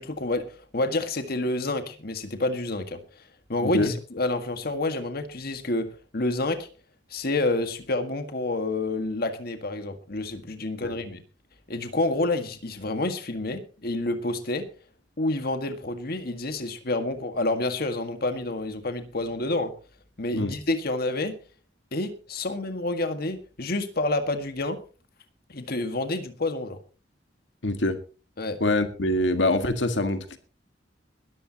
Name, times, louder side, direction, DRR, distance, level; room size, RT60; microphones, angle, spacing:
voice 1, 0.0-3.2 3.5-6.7 7.1-11.2 11.7-14.7 15.2-19.7 20.2-21.3 21.9-24.8 25.5-26.8 28.4-28.6, left 2 dB, 55° left, 7 dB, 1.8 m, -28 dB
voice 2, 3.6-3.9 10.8-10.9 20.3-20.5 27.6-28.0 28.6-30.4, left 2 dB, 85° left, 8 dB, 1.8 m, -24 dB
21.0 x 14.0 x 2.9 m, 0.35 s
head